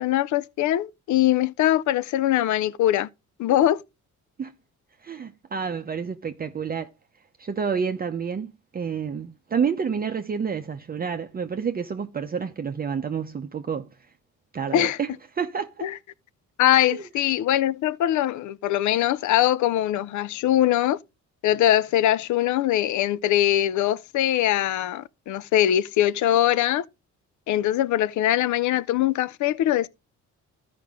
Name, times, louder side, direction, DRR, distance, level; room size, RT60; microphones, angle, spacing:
voice 1, 0.0-3.1 3.4-3.8 14.7-15.0 15.8-16.0 16.6-21.0 21.4-26.9 27.5-29.9, left 12 dB, 75° left, 0.6 m, -22 dB
voice 2, 5.0-6.9 7.4-14.0 14.5-15.1 15.4-15.9 16.9-17.0, right 6 dB, 30° right, 0.6 m, -29 dB
13.5 x 5.2 x 3.5 m
cardioid pair, 90°, 30 cm